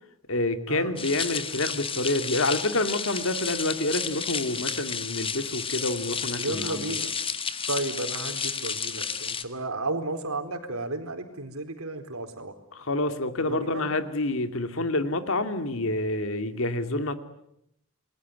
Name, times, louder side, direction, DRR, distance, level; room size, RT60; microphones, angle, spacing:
voice 1, 0.3-7.0 12.7-17.1, left 2 dB, 65° left, 9 dB, 2.4 m, -28 dB
sound 1, 1.0-9.4, left 6 dB, 25° left, 1.6 m, -32 dB
voice 2, 6.4-7.1 7.7-12.5 13.4-13.9, right 2 dB, 80° right, 7 dB, 4.3 m, -33 dB
28.5 x 21.0 x 9.6 m, 0.79 s
head